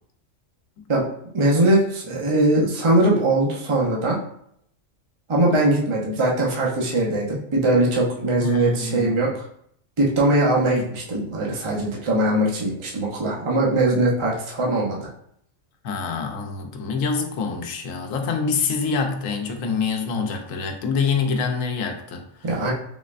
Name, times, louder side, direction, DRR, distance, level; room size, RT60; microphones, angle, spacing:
voice 1, 1.3-4.2 5.3-9.4 10.0-15.1 22.4-22.7, right 1 dB, 35° right, -4 dB, 0.5 m, -21 dB
voice 2, 8.4-9.2 15.8-22.5, left 5 dB, 85° left, 3 dB, 1.0 m, -26 dB
3.8 x 3.2 x 2.4 m, 0.69 s
omnidirectional pair, 1.3 m